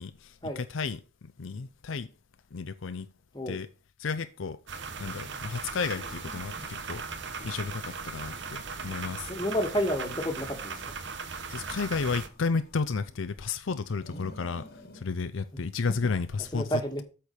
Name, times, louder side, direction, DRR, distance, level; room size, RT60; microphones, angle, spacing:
voice 1, 0.0-2.1 2.5-3.1 3.5-3.7 4.0-4.6 5.0-7.1 7.4-9.3 11.5-14.6 14.9-17.0, left 4 dB, 70° left, 0.6 m, -32 dB
sound 1, 4.7-12.3, right 5 dB, 60° right, 1.0 m, -38 dB
sound 2, 5.7-7.0 7.4-9.4 9.8-11.1 11.5-13.4 13.9-15.1, left 1 dB, 50° left, 1.5 m, -52 dB
voice 2, 9.3-10.7 15.5-15.6 16.5-17.0, equal, 20° left, 1.6 m, -30 dB
8.3 x 4.5 x 6.6 m
head